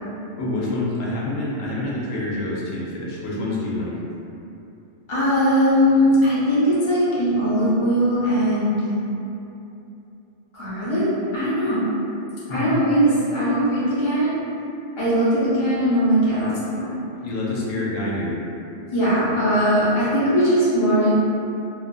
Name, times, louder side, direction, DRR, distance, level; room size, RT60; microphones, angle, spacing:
voice 1, 0.4-3.9 12.5-12.8 17.2-18.4, left 2 dB, 90° left, -5 dB, 1.0 m, -27 dB
voice 2, 5.1-8.8 10.5-11.8 12.5-14.3 15.0-16.9 18.9-21.2, equal, 30° left, -11 dB, 0.7 m, -20 dB
2.4 x 2.4 x 2.2 m, 2.8 s
omnidirectional pair, 1.3 m